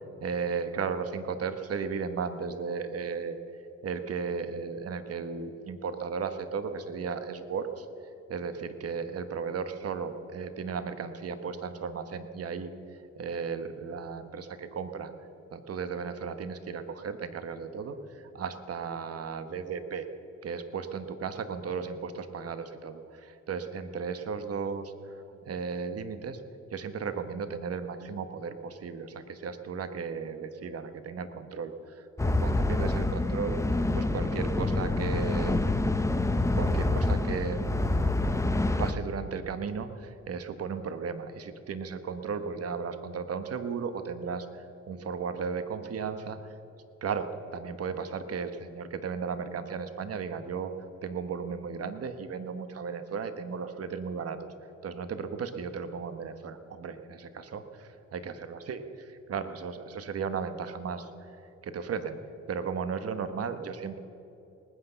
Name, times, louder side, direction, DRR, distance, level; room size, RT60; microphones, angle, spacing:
voice 1, 0.2-3.4 3.8-7.9 8.3-12.7 13.2-15.1 15.5-20.1 20.4-26.4 26.7-33.6 33.9-35.6 36.5-38.0 38.8-46.5 47.0-50.7 51.0-54.5 54.8-61.3 61.6-62.2 62.5-64.0, right 5 dB, 50° right, 10 dB, 1.3 m, -35 dB
sound 1, 32.2-38.9, left 2 dB, 10° left, 0.8 m, -27 dB
19.5 x 9.8 x 7.0 m, 2.9 s
cardioid pair, 90°, 30 cm